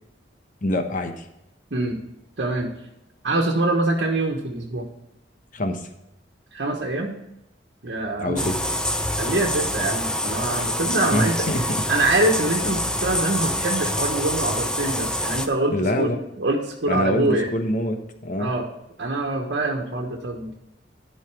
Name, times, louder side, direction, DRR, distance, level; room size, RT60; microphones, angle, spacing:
voice 1, 0.6-1.3 5.5-5.9 8.2-8.6 11.1-11.7 15.7-16.2 16.9-18.5, left 1 dB, 45° left, 6 dB, 1.1 m, -25 dB
voice 2, 1.7-2.0 2.4-2.7 3.2-4.9 6.5-7.1 7.8-8.5 9.2-11.5 11.9-17.5 18.4-18.7 19.0-20.5, right 2 dB, 70° right, -1 dB, 1.3 m, -24 dB
sound 1, 8.4-15.5, left 1 dB, 5° left, 0.6 m, -26 dB
12.0 x 5.7 x 4.8 m, 0.88 s
head